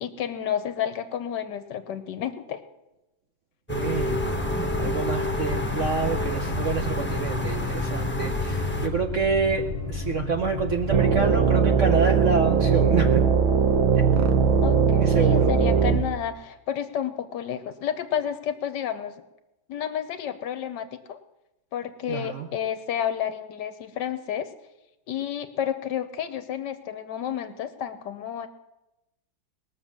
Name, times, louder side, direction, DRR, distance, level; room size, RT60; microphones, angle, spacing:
voice 1, 0.0-2.6 14.6-19.1 19.7-21.2 21.7-24.5 25.1-28.5, left 9 dB, 65° left, 11 dB, 1.2 m, -31 dB
sound 1, 3.7-8.9, left 1 dB, 10° left, 0.8 m, -29 dB
voice 2, 3.7-4.2 4.8-13.2 15.0-15.5 22.1-22.5, right 4 dB, 60° right, 5 dB, 0.8 m, -27 dB
sound 2, 3.9-11.6, left 2 dB, 15° right, 4.7 m, -33 dB
sound 3, 10.9-16.0, right 6 dB, 75° right, 1.8 m, -20 dB
19.5 x 6.7 x 7.3 m, 0.97 s
omnidirectional pair, 2.2 m